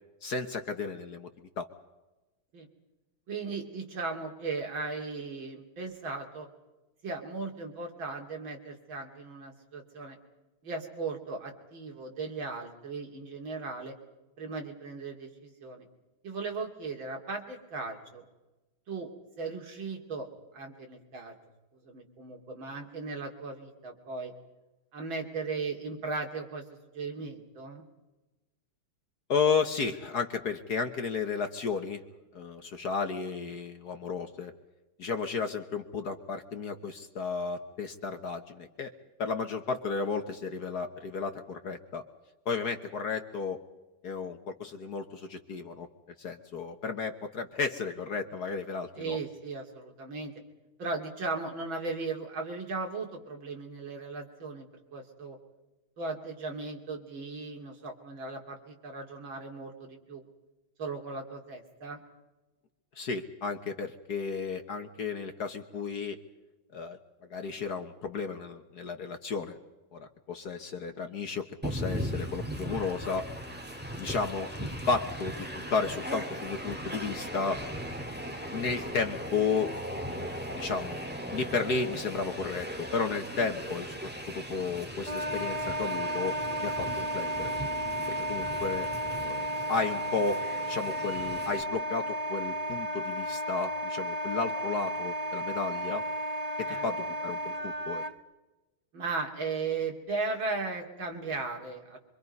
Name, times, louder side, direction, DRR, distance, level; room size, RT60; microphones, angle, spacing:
voice 1, 0.2-1.7 29.3-32.0 32.3-34.5 35.0-38.9 39.2-42.0 42.4-43.6 44.0-45.9 46.2-49.2 62.9-66.2 66.7-67.0 67.3-69.6 69.9-73.3 74.0-77.6 78.5-79.7 80.0-84.0 84.3-86.4 86.6-87.5 88.1-88.9 89.2-96.0 96.6-98.0, left 5 dB, 50° left, 6 dB, 1.6 m, -33 dB
voice 2, 3.3-6.5 7.0-10.2 10.6-14.0 14.4-15.9 16.2-18.2 18.9-19.1 19.4-20.3 20.5-21.3 21.8-24.3 24.9-26.6 26.9-27.8 48.9-50.3 50.8-55.4 56.0-60.2 60.8-62.0 88.0-88.1 96.7-96.9 98.9-102.0, right 3 dB, 65° right, 2 dB, 3.4 m, -37 dB
Train, 71.6-91.6, equal, 5° right, 1.6 m, -38 dB
Wind instrument woodwind instrument, 85.1-98.1, equal, 45° right, 0.5 m, -33 dB
25.0 x 25.0 x 5.4 m, 1.1 s
omnidirectional pair, 2.4 m